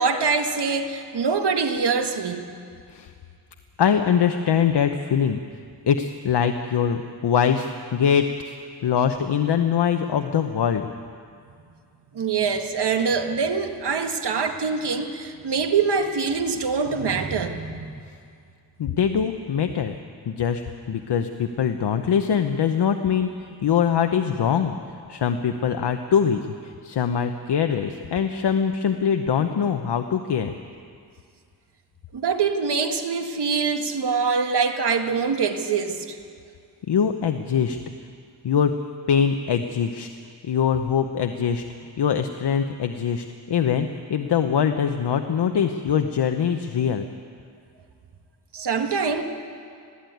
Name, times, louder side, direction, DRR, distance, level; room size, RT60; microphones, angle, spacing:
voice 1, 0.0-2.4 12.1-18.0 32.1-36.2 48.5-49.2, right 5 dB, 75° right, 6 dB, 1.7 m, -24 dB
voice 2, 3.8-5.4 5.8-8.5 8.8-10.9 18.8-19.9 20.3-24.8 25.1-30.5 36.9-37.8 38.4-38.7 39.1-40.1 40.5-41.7 42.0-47.1, left 7 dB, 75° left, 7 dB, 0.9 m, -23 dB
21.0 x 15.0 x 9.3 m, 2.3 s
wide cardioid pair, 100°, 40 cm